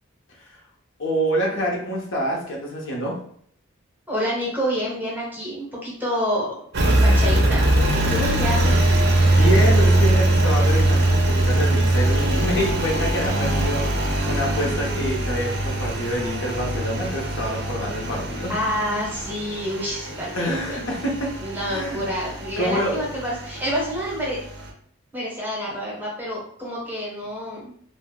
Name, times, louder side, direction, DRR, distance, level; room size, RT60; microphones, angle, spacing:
voice 1, 1.0-3.2 8.1-8.2 9.1-18.5 20.3-21.3 21.7-22.0 22.6-23.0, equal, 60° left, -1 dB, 0.7 m, -26 dB
voice 2, 4.1-8.9 18.5-20.8 21.4-24.4 25.1-27.7, equal, 10° right, -5 dB, 0.8 m, -28 dB
Engine, 6.7-24.7, right 1 dB, 50° right, 0.5 m, -22 dB
2.5 x 2.0 x 3.6 m, 0.62 s
head